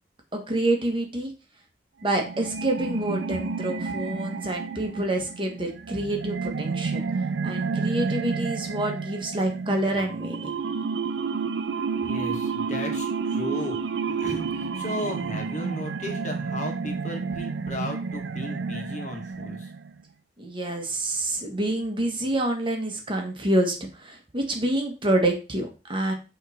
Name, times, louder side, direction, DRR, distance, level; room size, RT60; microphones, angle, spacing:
voice 1, 0.3-1.3 2.0-7.0 7.4-10.5 20.4-26.1, right 1 dB, 30° right, 2 dB, 1.3 m, -27 dB
sound 1, 2.1-20.0, right 5 dB, 90° right, 0.5 m, -30 dB
voice 2, 12.0-13.8 14.2-19.7, left 1 dB, 45° left, 2 dB, 1.5 m, -35 dB
8.0 x 3.2 x 4.2 m, 0.31 s
head